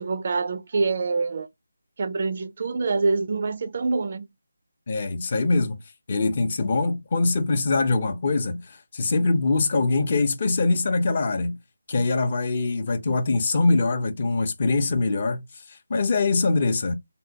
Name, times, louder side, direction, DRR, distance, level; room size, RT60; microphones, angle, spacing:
voice 1, 0.0-1.5 2.0-4.2, right 4 dB, 45° right, 0.3 m, -25 dB
voice 2, 4.9-5.8 6.1-11.6 11.9-15.4 15.7-16.9, left 3 dB, 40° left, 0.6 m, -23 dB
3.5 x 2.2 x 2.7 m
figure-of-eight pair, 165°, 0 cm